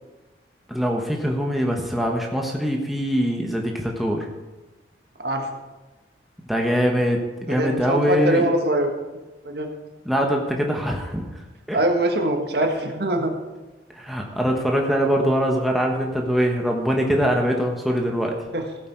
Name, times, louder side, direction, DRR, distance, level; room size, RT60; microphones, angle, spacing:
voice 1, 0.7-4.3 6.5-8.4 10.0-11.2 11.7-11.8 13.9-18.3, equal, ahead, 0 dB, 1.2 m, -23 dB
voice 2, 7.5-8.9 9.4-9.7 11.7-13.3 18.5-18.7, right 1 dB, 65° right, 4 dB, 1.5 m, -23 dB
15.5 x 8.5 x 4.6 m, 1.2 s
head